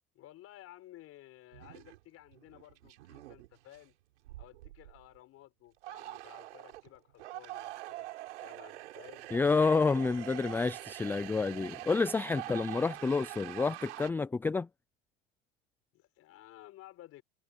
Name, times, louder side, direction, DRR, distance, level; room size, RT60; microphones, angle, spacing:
voice 1, 0.1-3.9 4.4-8.1 8.4-9.3 12.8-13.0 15.9-17.2, left 14 dB, 40° left, 6.1 m, -55 dB
sound 1, 1.5-2.0 2.3-3.9 4.2-5.2 5.8-14.1, right 17 dB, 75° right, 4.5 m, -45 dB
voice 2, 9.3-14.7, left 4 dB, 5° left, 0.4 m, -29 dB
hypercardioid pair, 115°, 35 cm